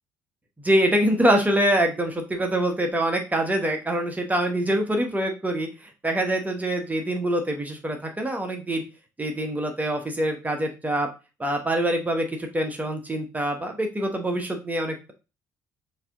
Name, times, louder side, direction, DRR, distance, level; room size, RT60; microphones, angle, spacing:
voice 1, 0.6-8.8 9.2-11.1 11.4-15.1, right 1 dB, 15° right, 3 dB, 1.1 m, -25 dB
4.6 x 2.9 x 3.5 m, 0.29 s
figure-of-eight pair, 50°, 9 cm